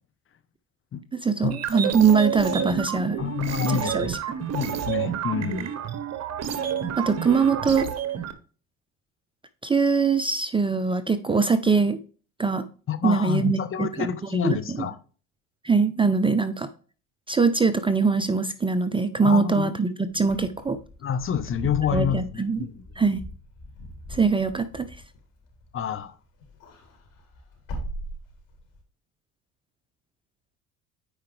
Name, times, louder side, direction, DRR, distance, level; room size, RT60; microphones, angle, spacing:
voice 1, 1.1-3.2 3.7-4.2 7.0-7.9 9.6-12.0 12.4-12.7 13.0-14.1 14.4-14.9 15.6-16.7 17.3-20.8 21.9-22.6 23.0-23.2 24.1-24.9, right 5 dB, 15° right, 0.6 m, -22 dB
sound 1, 1.5-8.3, right 8 dB, 45° right, 1.2 m, -29 dB
voice 2, 3.2-4.1 4.5-5.7 12.9-15.0 19.2-19.7 21.0-22.8 25.7-26.1, left 8 dB, 35° left, 1.0 m, -28 dB
Wind / Car, 20.2-26.0 26.3-28.8, equal, 60° left, 4.0 m, -39 dB
9.5 x 4.9 x 3.3 m
hypercardioid pair, 75°, 37 cm